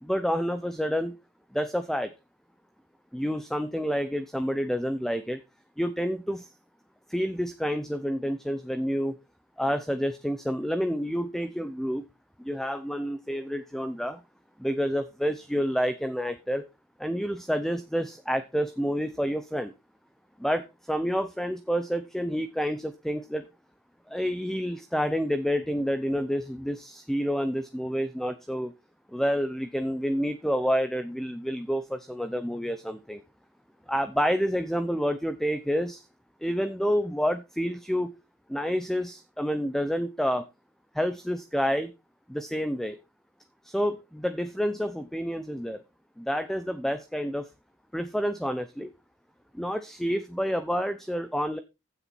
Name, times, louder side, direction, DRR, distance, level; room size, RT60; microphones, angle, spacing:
voice 1, 0.0-1.1 1.5-2.1 3.1-5.4 5.8-6.5 7.1-9.2 9.6-12.0 12.4-14.2 14.6-16.6 17.0-19.7 20.4-23.4 24.1-28.7 29.1-33.2 33.9-36.1 36.4-38.1 38.5-40.5 40.9-41.9 42.3-43.0 43.6-45.8 46.2-47.5 47.9-48.9 49.5-51.6, equal, ahead, 10 dB, 0.7 m, -29 dB
15.5 x 7.0 x 4.5 m, 0.27 s
head